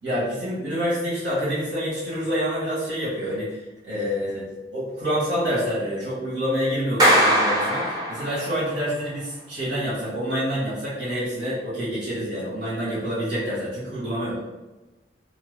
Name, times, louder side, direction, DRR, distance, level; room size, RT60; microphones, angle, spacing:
voice 1, 0.0-4.4 4.7-14.4, equal, 85° right, -9 dB, 1.5 m, -27 dB
Clapping, 7.0-8.6, equal, 20° right, 0.5 m, -20 dB
2.8 x 2.2 x 3.2 m, 1.1 s
head